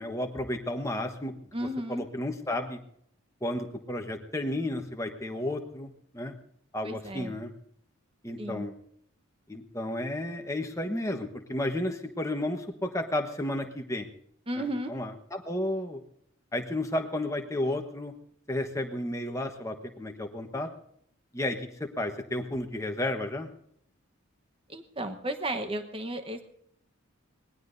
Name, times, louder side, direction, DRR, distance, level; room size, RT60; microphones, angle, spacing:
voice 1, 0.0-1.3 1.9-2.8 3.4-5.9 6.1-6.3 6.7-7.5 8.2-8.7 9.5-14.1 14.6-16.0 16.5-18.1 18.5-20.7 21.3-23.5, left 1 dB, 15° left, 4 dB, 1.2 m, -32 dB
voice 2, 1.5-2.0 6.8-7.3 8.4-8.7 14.5-14.9 24.7-26.4, right 1 dB, 25° right, 8 dB, 1.1 m, -34 dB
25.0 x 19.5 x 2.7 m, 0.69 s
head